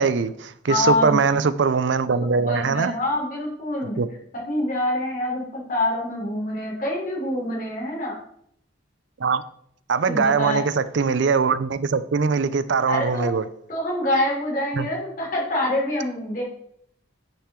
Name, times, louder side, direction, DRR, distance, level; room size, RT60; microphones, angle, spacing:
voice 1, 0.0-2.9 4.0-4.1 9.2-9.4 9.9-13.5 14.8-14.9, right 5 dB, 65° right, 0.5 m, -21 dB
voice 2, 0.6-1.2 2.5-4.0 4.5-8.1 10.1-10.6 12.9-13.3 13.7-16.4, left 1 dB, 45° left, 3.3 m, -25 dB
10.0 x 5.9 x 3.7 m
head